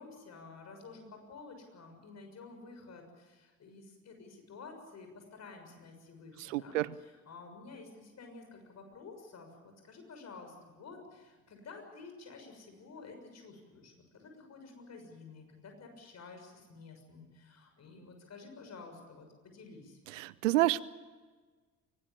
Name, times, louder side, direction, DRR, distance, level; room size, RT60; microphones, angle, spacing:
voice 1, 0.0-20.0, left 4 dB, 40° left, 4 dB, 6.6 m, -51 dB
voice 2, 6.5-6.9 20.1-20.8, right 17 dB, 70° right, 20 dB, 0.7 m, -28 dB
23.5 x 18.5 x 8.5 m, 1.4 s
figure-of-eight pair, 55°, 40 cm